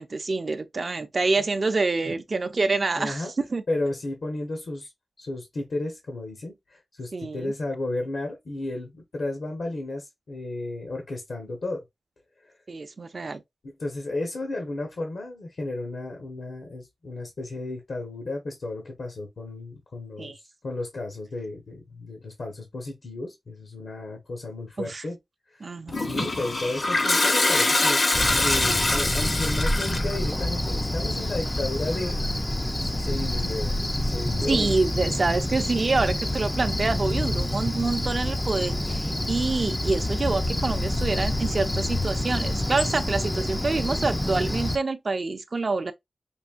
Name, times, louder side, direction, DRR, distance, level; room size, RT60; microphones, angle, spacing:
voice 1, 0.0-3.2 3.5-3.6 7.1-7.5 12.7-13.4 20.2-20.4 24.8-25.0 25.6-26.3 34.5-45.9, right 3 dB, 45° right, 0.6 m, -27 dB
voice 2, 3.0-3.3 3.7-4.9 5.2-11.8 12.4-12.5 13.6-20.3 20.6-25.2 25.5-25.8 26.1-32.2 32.8-34.8 35.9-36.0, left 2 dB, 70° left, 1.1 m, -33 dB
Toilet flush, 25.9-30.2, left 2 dB, 45° left, 0.7 m, -24 dB
Cricket, 28.1-44.8, left 1 dB, 15° left, 0.4 m, -27 dB
5.2 x 2.7 x 2.4 m
wide cardioid pair, 95°, 0 cm